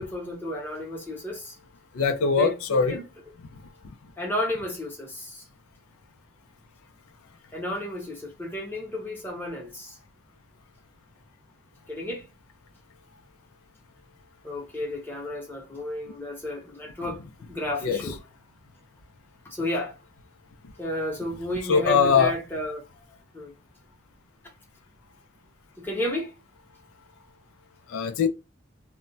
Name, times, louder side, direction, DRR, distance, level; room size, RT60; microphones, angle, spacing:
voice 1, 0.0-1.6 2.4-3.1 4.2-5.5 7.5-10.0 11.9-12.3 14.4-18.2 19.4-20.0 20.8-22.8 23.3-23.5 25.8-26.3, left 1 dB, 10° left, 0.7 m, -32 dB
voice 2, 1.9-3.0 17.8-18.0 21.7-22.3 27.9-28.3, left 5 dB, 90° left, 0.4 m, -21 dB
2.2 x 2.1 x 3.8 m
head